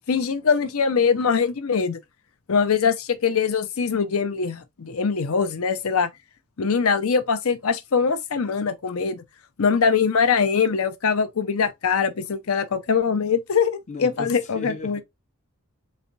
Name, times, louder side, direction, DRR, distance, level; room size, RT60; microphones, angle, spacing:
voice 1, 0.1-2.0 2.5-6.1 6.6-9.2 9.6-15.0, left 6 dB, 70° left, 0.6 m, -22 dB
voice 2, 13.9-15.0, left 3 dB, 35° left, 0.6 m, -35 dB
4.1 x 2.2 x 3.9 m
head